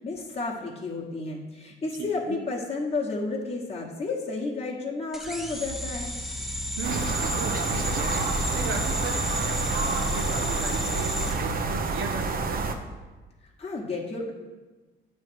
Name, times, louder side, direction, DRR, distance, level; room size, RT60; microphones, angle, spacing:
voice 1, 0.0-6.2 13.4-14.3, left 3 dB, 30° left, -3 dB, 1.3 m, -32 dB
voice 2, 2.0-2.4 6.8-8.3 8.5-12.7, right 5 dB, 80° right, 3 dB, 0.9 m, -36 dB
sound 1, 5.1-12.2, left 1 dB, ahead, 0.7 m, -32 dB
sound 2, 6.8-12.7, right 3 dB, 45° right, 0.7 m, -28 dB
8.8 x 3.2 x 6.2 m, 1.2 s
cardioid pair, 90°, 20 cm